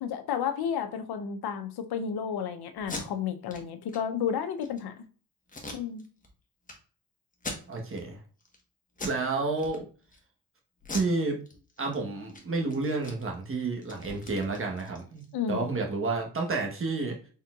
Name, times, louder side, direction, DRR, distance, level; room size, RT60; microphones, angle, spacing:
voice 1, 0.0-4.9 5.7-6.0 15.3-15.7, left 7 dB, 65° left, 0.7 m, -32 dB
Packing tape duct tape, 2.8-3.0 3.5-3.6 3.9-4.0 4.4-4.8 5.5-6.3 6.6-6.7 7.3-8.0 8.4-8.6 8.9-9.2 9.6-10.2 10.8-11.9 12.2-12.4 12.7-15.3, left 2 dB, 20° left, 1.1 m, -40 dB
voice 2, 7.7-8.2 9.0-9.8 10.9-11.4 11.8-17.2, right 3 dB, 30° right, 1.1 m, -30 dB
4.4 x 3.7 x 2.3 m
cardioid pair, 85°, 41 cm